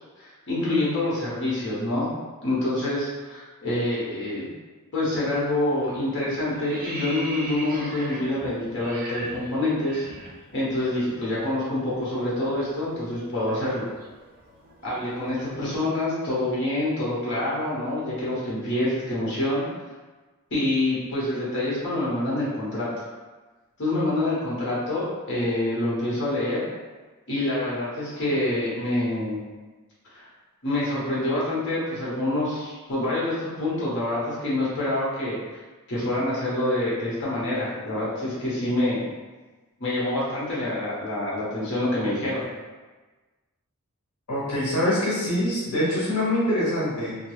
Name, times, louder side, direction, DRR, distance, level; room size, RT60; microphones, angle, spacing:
voice 1, 0.2-2.1 2.4-4.5 4.9-10.1 10.5-13.9 14.8-19.7 20.5-22.9 23.8-26.6 27.3-29.4 30.1-30.3 30.6-35.4 35.9-39.0 39.8-42.4, left 1 dB, 55° left, -7 dB, 1.0 m, -26 dB
sound 1, 5.3-5.6 5.9-10.8 11.1-11.3 11.6-15.7, right 2 dB, 40° right, 0.5 m, -40 dB
voice 2, 44.3-47.2, left 1 dB, 85° left, -7 dB, 0.7 m, -24 dB
2.3 x 2.2 x 3.0 m, 1.3 s
head